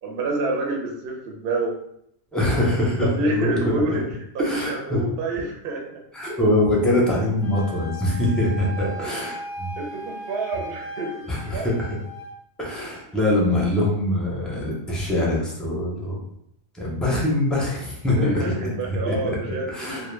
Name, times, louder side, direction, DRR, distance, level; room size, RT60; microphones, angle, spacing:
voice 1, 0.0-1.8 3.0-4.0 4.3-5.9 8.9-9.2 9.8-11.2 11.5-11.7 18.2-20.1, right 2 dB, 65° right, 0 dB, 0.7 m, -28 dB
voice 2, 2.3-4.0 4.4-5.0 6.1-9.7 11.3-12.0 12.6-16.2 16.7-20.1, left 1 dB, ahead, -5 dB, 0.3 m, -23 dB
Wind instrument woodwind instrument, 7.4-12.4, right 1 dB, 60° left, 0.6 m, -37 dB
2.1 x 2.0 x 3.1 m, 0.73 s
omnidirectional pair, 1.1 m